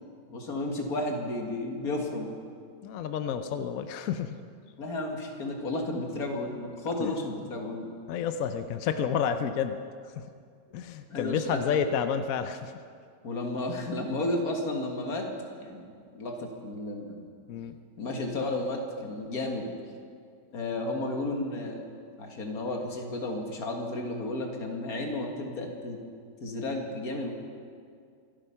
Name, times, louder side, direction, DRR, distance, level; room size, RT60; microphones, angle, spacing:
voice 1, 0.3-2.3 4.8-7.9 11.1-11.8 13.2-15.3 15.6-17.3 18.0-19.7 20.5-21.8 22.2-26.0 26.4-27.3, left 2 dB, 50° left, 2 dB, 2.1 m, -33 dB
voice 2, 2.8-4.4 7.0-7.1 8.1-9.8 10.1-10.2 10.7-12.7 17.5-17.8, left 7 dB, 70° left, 9 dB, 0.8 m, -30 dB
25.0 x 9.0 x 5.7 m, 2.2 s
omnidirectional pair, 2.1 m